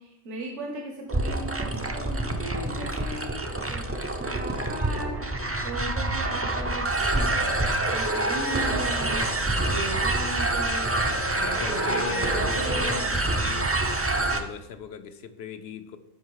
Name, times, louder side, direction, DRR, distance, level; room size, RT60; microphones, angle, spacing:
voice 1, 0.0-3.9 4.2-13.2, right 1 dB, 70° right, 1 dB, 1.4 m, -37 dB
sound 1, 1.1-14.4, right 2 dB, 20° right, 0.4 m, -26 dB
voice 2, 11.4-13.9 14.1-16.0, left 6 dB, 60° left, 10 dB, 0.9 m, -38 dB
11.0 x 5.4 x 4.8 m, 0.90 s
omnidirectional pair, 1.3 m